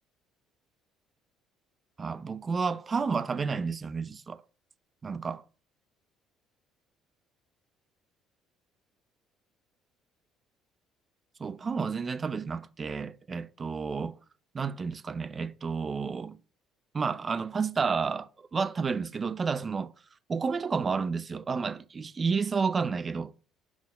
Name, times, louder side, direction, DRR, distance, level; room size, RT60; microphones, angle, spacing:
voice 1, 2.0-4.4 5.0-5.4 11.4-14.1 14.5-16.4 16.9-19.9 20.3-23.3, right 5 dB, 30° right, 0.5 m, -31 dB
6.2 x 5.4 x 5.1 m
cardioid pair, 115°, 0 cm